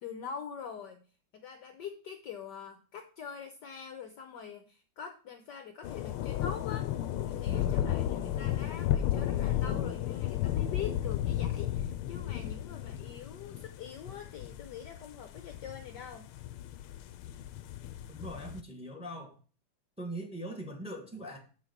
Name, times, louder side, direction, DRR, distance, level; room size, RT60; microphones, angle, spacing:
voice 1, 0.0-1.0 1.3-6.9 7.3-16.3, left 7 dB, 65° left, 7 dB, 1.2 m, -44 dB
sound 1, 5.8-18.6, left 11 dB, 90° left, 1.6 m, -33 dB
voice 2, 18.1-19.4 20.0-21.4, right 1 dB, 5° right, 4 dB, 1.5 m, -41 dB
7.4 x 6.1 x 4.5 m, 0.38 s
omnidirectional pair, 2.4 m